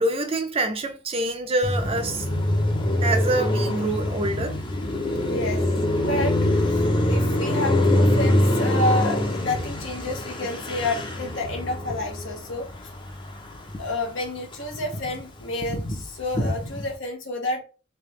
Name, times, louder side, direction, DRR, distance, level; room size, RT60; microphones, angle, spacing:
voice 1, 0.0-2.3 3.0-4.6, right 1 dB, 30° right, 0.5 m, -26 dB
Car passing by, 1.6-14.1 14.4-16.9, left 1 dB, 25° left, 0.6 m, -24 dB
voice 2, 5.3-5.6 6.0-12.7 13.8-17.6, left 2 dB, 70° left, 0.8 m, -30 dB
3.3 x 2.8 x 3.1 m
head